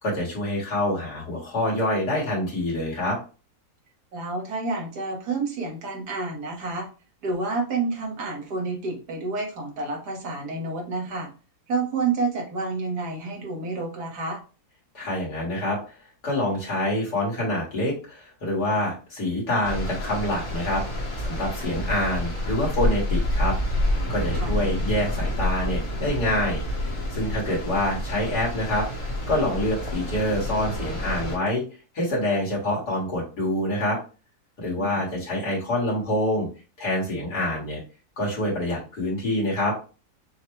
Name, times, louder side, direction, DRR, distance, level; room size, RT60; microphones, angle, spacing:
voice 1, 0.0-3.2 14.9-15.8 16.2-23.5 24.1-26.6 27.1-28.9 29.3-31.6 31.9-34.0 34.6-36.5 36.8-37.8 38.2-39.7, left 1 dB, 85° left, -4 dB, 2.3 m, -26 dB
voice 2, 4.1-6.9 7.2-11.3 11.7-14.4 24.4-24.6 34.8-35.0, right 3 dB, 85° right, 0 dB, 1.8 m, -29 dB
sound 1, 19.6-31.4, left 1 dB, 25° left, 0.8 m, -28 dB
6.3 x 2.2 x 3.1 m, 0.35 s
omnidirectional pair, 1.7 m